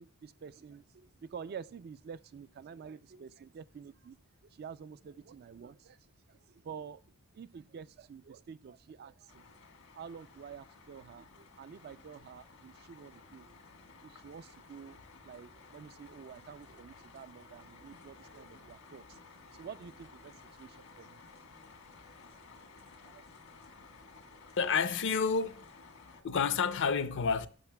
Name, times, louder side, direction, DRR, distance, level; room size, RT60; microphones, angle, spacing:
voice 1, 0.0-4.2 4.4-9.5 9.9-13.6 14.0-15.0 15.2-19.2 19.5-21.2 22.6-22.7 23.0-23.3, right 6 dB, 45° right, 0.3 m, -49 dB
sound 1, 9.3-26.2, left 4 dB, 75° left, 1.4 m, -56 dB
voice 2, 24.6-25.6 26.2-27.5, left 5 dB, 55° left, 0.6 m, -29 dB
11.5 x 6.3 x 2.2 m
head